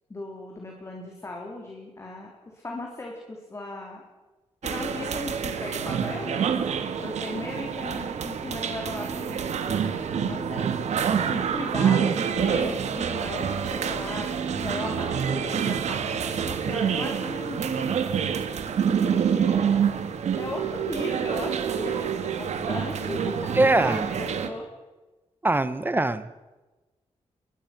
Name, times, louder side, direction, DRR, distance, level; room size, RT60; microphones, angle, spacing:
voice 1, 0.1-4.0 4.6-10.8 11.3-18.3 18.9-19.8 20.4-24.7, left 2 dB, 25° left, 0 dB, 3.9 m, -37 dB
sound 1, 4.6-24.5, right 7 dB, 85° right, 2.0 m, -27 dB
voice 2, 23.5-24.1 25.4-26.3, right 2 dB, 20° right, 14 dB, 1.1 m, -22 dB
25.5 x 21.5 x 6.2 m, 1.1 s
wide cardioid pair, 130°, 11 cm